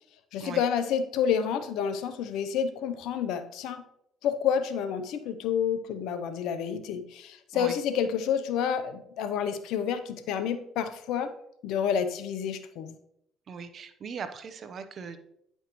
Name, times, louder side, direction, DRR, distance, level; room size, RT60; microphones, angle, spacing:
voice 1, 0.3-3.8 4.2-11.3 11.6-12.9, left 8 dB, 75° left, 10 dB, 0.7 m, -29 dB
voice 2, 13.5-15.2, right 6 dB, 50° right, 10 dB, 0.9 m, -39 dB
9.9 x 5.5 x 3.1 m, 0.75 s
supercardioid pair, 65°, 0 cm